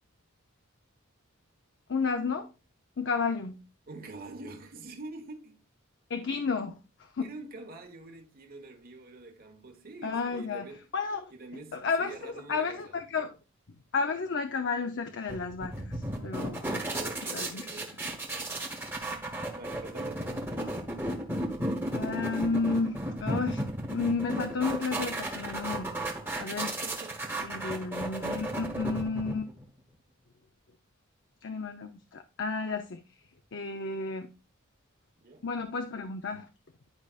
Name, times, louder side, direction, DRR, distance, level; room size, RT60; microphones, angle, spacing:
voice 1, 1.9-2.5 3.0-3.6 6.1-6.8 7.2-7.3 10.0-10.7 10.9-11.3 11.7-13.4 13.9-16.0 16.2-16.8 17.3-17.7 21.9-23.6 23.9-26.0 26.4-26.8 27.4-29.5 31.4-33.0 33.5-34.3 35.4-36.5, left 4 dB, 60° left, 0.7 m, -32 dB
voice 2, 3.9-5.6 7.2-10.9 11.3-13.0 16.6-18.7 19.5-20.4 26.6-27.7 35.2-35.5, right 2 dB, 45° right, 1.3 m, -46 dB
sound 1, 15.3-29.6, right 1 dB, 10° right, 1.3 m, -34 dB
10.5 x 5.0 x 2.4 m
head